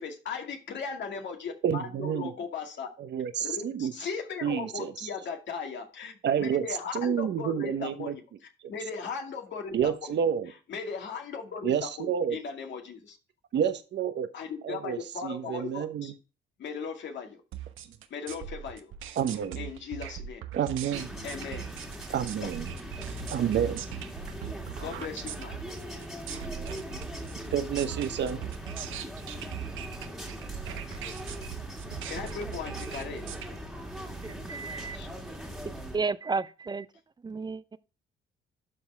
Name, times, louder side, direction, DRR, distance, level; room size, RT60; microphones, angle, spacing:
voice 1, 0.0-2.9 3.4-10.2 10.4-13.2 14.3-16.1 16.6-17.4 18.1-18.9 19.6-20.4 21.2-21.7 22.4-22.5 24.8-25.6 31.8-33.3 34.5-35.7, left 5 dB, 65° left, 2.2 m, -38 dB
voice 2, 1.6-2.3 3.0-3.9 4.4-4.9 6.2-6.6 6.9-8.1 9.7-10.5 11.6-12.4 13.5-14.3 14.6-16.1 19.2-19.6 20.5-21.1 22.1-22.7 23.3-23.9 27.5-28.4, right 8 dB, 65° right, 1.0 m, -29 dB
sound 1, 17.5-33.5, right 10 dB, 85° right, 1.0 m, -40 dB
sound 2, 20.9-36.0, right 1 dB, ahead, 2.1 m, -40 dB
voice 3, 34.2-35.0 35.6-36.9 37.2-37.8, right 4 dB, 20° right, 0.4 m, -33 dB
12.0 x 4.2 x 3.3 m
cardioid pair, 90°, 20 cm